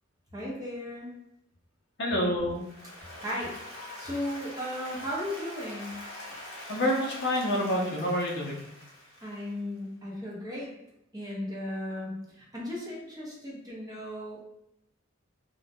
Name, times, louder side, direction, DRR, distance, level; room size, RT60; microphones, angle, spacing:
voice 1, 0.3-1.1 3.2-6.0 9.2-10.7 11.1-14.4, left 1 dB, 20° right, -5 dB, 0.6 m, -36 dB
voice 2, 2.0-2.6 6.7-8.6, equal, 55° left, -2 dB, 0.6 m, -27 dB
Applause, 2.5-9.7, left 1 dB, 85° left, 1.0 m, -44 dB
2.2 x 2.1 x 2.6 m, 0.81 s
head